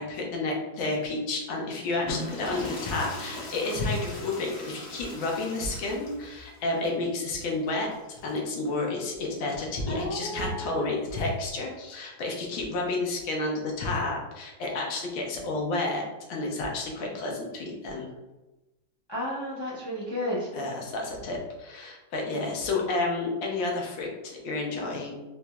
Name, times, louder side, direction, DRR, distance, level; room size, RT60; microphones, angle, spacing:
voice 1, 0.0-7.9 8.2-18.1 20.5-25.1, left 2 dB, 80° left, -1 dB, 1.6 m, -31 dB
sound 1, 1.9-8.6 9.9-11.3, left 1 dB, 55° left, 1.1 m, -40 dB
voice 2, 9.9-10.9 19.1-20.5, equal, 25° left, -9 dB, 0.5 m, -32 dB
4.3 x 3.0 x 2.3 m, 1.1 s
omnidirectional pair, 2.1 m